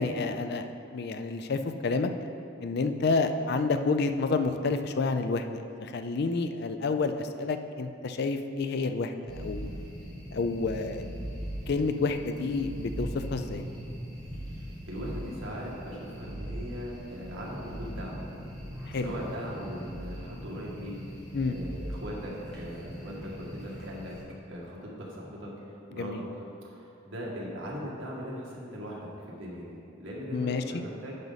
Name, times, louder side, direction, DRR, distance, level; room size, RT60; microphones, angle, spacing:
voice 1, 0.0-2.1 2.6-9.8 10.3-11.1 11.7-13.6 18.9-19.1 21.3-21.6 26.0-26.2 30.3-30.8, left 3 dB, 55° left, 8 dB, 0.4 m, -29 dB
sound 1, 9.3-24.2, equal, 5° left, 2.0 m, -40 dB
voice 2, 14.6-18.3 19.0-21.0 21.5-24.2 24.5-31.2, equal, 75° right, -4 dB, 1.8 m, -39 dB
10.5 x 5.3 x 4.0 m, 2.7 s
head